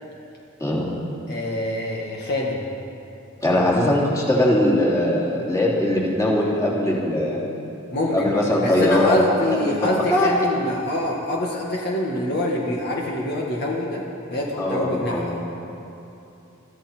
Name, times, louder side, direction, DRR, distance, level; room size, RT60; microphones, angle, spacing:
voice 1, 1.3-2.7 3.5-3.8 7.9-8.3 8.6-14.0 14.3-15.4, left 1 dB, 55° left, -3 dB, 1.8 m, -25 dB
voice 2, 3.4-7.4 8.1-9.2 9.5-10.3 14.6-15.2, left 1 dB, 15° left, -5 dB, 2.9 m, -21 dB
22.5 x 14.0 x 4.5 m, 2.9 s
head